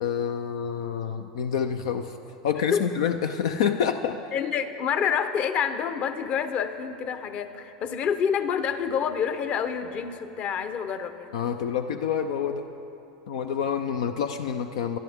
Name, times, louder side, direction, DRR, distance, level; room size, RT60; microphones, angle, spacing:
voice 1, 0.0-2.2 2.4-4.2 11.3-12.7 13.3-15.0, left 8 dB, 75° left, 7 dB, 0.5 m, -27 dB
voice 2, 2.5-2.8 4.3-11.3, left 7 dB, 45° left, 10 dB, 1.0 m, -28 dB
23.0 x 12.0 x 3.6 m, 2.9 s
hypercardioid pair, 105°, 3 cm